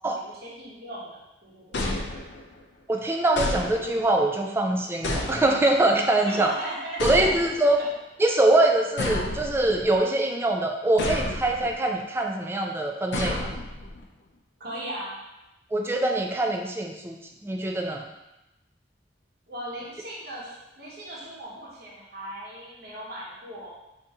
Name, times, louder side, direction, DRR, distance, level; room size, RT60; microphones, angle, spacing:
voice 1, 0.2-2.0 6.2-7.2 7.8-7.9 14.6-15.2 19.5-23.7, right 1 dB, 60° right, -5 dB, 1.0 m, -38 dB
sound 1, 1.7-2.6 3.4-4.2 5.0-5.9 7.0-7.8 9.0-10.0 11.0-11.8 13.1-14.0, left 2 dB, 80° left, 0.5 m, -31 dB
voice 2, 2.9-6.5 7.0-7.8 8.2-13.5 15.7-17.2 17.4-18.1, right 2 dB, 15° right, 2 dB, 0.3 m, -23 dB
2.8 x 2.7 x 3.5 m, 0.95 s
head